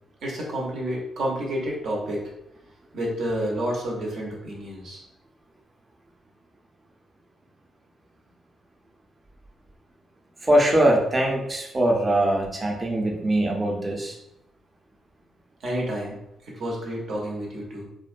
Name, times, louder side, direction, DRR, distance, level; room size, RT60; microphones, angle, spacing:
voice 1, 0.2-2.3 2.9-5.0 15.6-16.2 16.4-17.9, right 1 dB, 70° right, -3 dB, 0.8 m, -29 dB
voice 2, 10.4-14.2, right 1 dB, 30° right, 0 dB, 0.6 m, -22 dB
2.3 x 2.2 x 2.5 m, 0.83 s
supercardioid pair, 60°, 0 cm